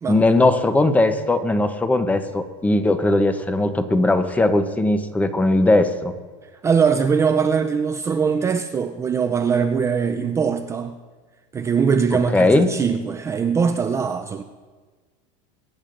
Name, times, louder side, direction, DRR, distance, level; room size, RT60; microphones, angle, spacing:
voice 1, 0.1-6.1 12.3-12.7, left 2 dB, 10° left, 0.8 m, -19 dB
voice 2, 6.6-11.0 11.5-14.4, right 6 dB, 20° right, 0.4 m, -21 dB
23.0 x 10.0 x 2.6 m
supercardioid pair, 140°, 15 cm